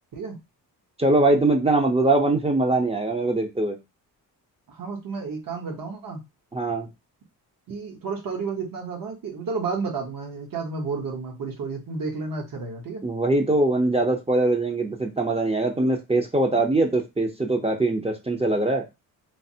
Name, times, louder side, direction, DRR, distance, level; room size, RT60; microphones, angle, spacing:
voice 1, 1.0-3.8 6.5-6.9 13.0-18.8, right 2 dB, 15° right, 2 dB, 0.5 m, -22 dB
voice 2, 4.7-6.2 7.7-13.0, right 4 dB, 60° right, 2 dB, 1.0 m, -31 dB
3.2 x 2.0 x 2.7 m, 0.23 s
cardioid pair, 100°, 38 cm